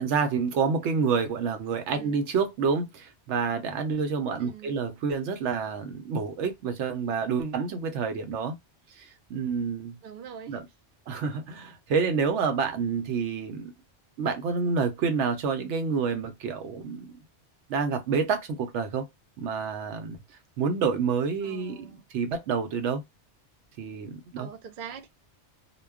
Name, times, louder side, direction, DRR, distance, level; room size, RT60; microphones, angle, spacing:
voice 1, 0.0-8.6 9.0-10.0 10.5-10.6 11.1-13.7 14.2-17.1 17.7-19.1 19.4-20.2 20.6-23.0 23.8-24.5, right 5 dB, 85° right, 0.9 m, -28 dB
voice 2, 1.9-2.2 4.4-4.8 10.0-10.6 21.4-22.1 24.4-25.1, right 7 dB, 60° right, 0.6 m, -43 dB
2.2 x 2.2 x 3.4 m
omnidirectional pair, 1.2 m